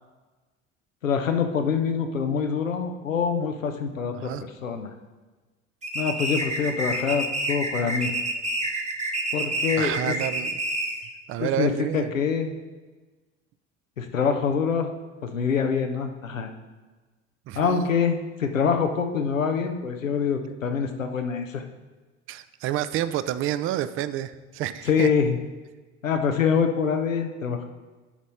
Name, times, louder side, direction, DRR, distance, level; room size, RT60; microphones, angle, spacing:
voice 1, 1.0-4.3 4.6-4.9 5.9-8.1 9.3-10.2 11.4-12.5 14.0-14.9 15.2-16.5 17.5-21.6 24.8-25.4 26.0-27.6, left 6 dB, 90° left, 5 dB, 0.6 m, -25 dB
voice 2, 4.1-4.4 9.8-10.6 11.3-12.1 17.5-17.9 22.3-25.1, right 12 dB, 35° right, 13 dB, 0.4 m, -29 dB
sound 1, 5.8-11.1, right 1 dB, 20° right, 0.9 m, -28 dB
10.0 x 4.2 x 4.1 m, 1.3 s
figure-of-eight pair, 60°, 38 cm